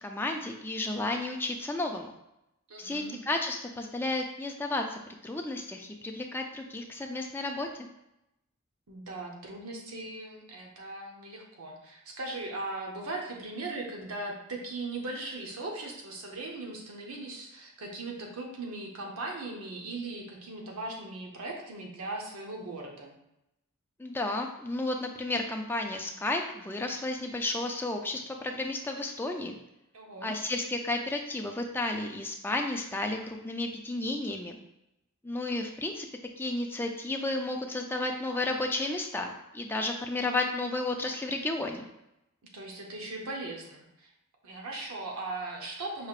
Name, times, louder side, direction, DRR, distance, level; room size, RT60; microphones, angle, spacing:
voice 1, 0.0-2.1 2.8-7.7 24.0-29.5 30.2-34.6 35.2-36.1 36.4-41.9, left 2 dB, 10° left, 2 dB, 0.4 m, -32 dB
voice 2, 2.7-3.2 8.9-23.1 29.9-30.4 42.5-44.1 44.4-46.1, right 2 dB, 75° right, 0 dB, 0.8 m, -39 dB
5.6 x 3.4 x 2.4 m, 0.87 s
head